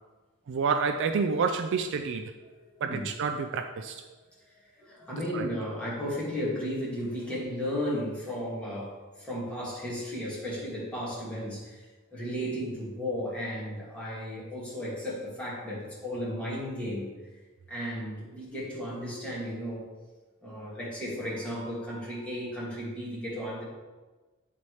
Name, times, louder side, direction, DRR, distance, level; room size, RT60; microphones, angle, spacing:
voice 1, 0.5-2.3 2.8-4.0 5.1-5.5, right 5 dB, 55° right, 6 dB, 0.4 m, -29 dB
voice 2, 4.6-17.1 17.7-19.9 20.4-23.6, equal, 5° left, -7 dB, 2.0 m, -34 dB
9.0 x 4.2 x 3.2 m, 1.2 s
head